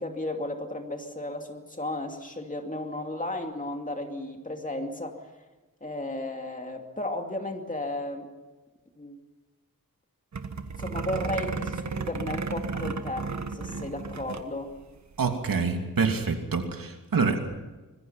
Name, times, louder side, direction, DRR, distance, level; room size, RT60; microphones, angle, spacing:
voice 1, 0.0-5.3 5.8-8.3 9.0-9.2 10.8-14.7, left 1 dB, 25° left, 3 dB, 2.6 m, -34 dB
sound 1, 10.3-14.5 14.8-14.9 15.1-15.4, right 4 dB, 55° right, 1.5 m, -33 dB
voice 2, 15.2-17.6, right 4 dB, 85° right, 4 dB, 2.9 m, -26 dB
25.5 x 21.0 x 5.9 m, 1.2 s
wide cardioid pair, 140°, 33 cm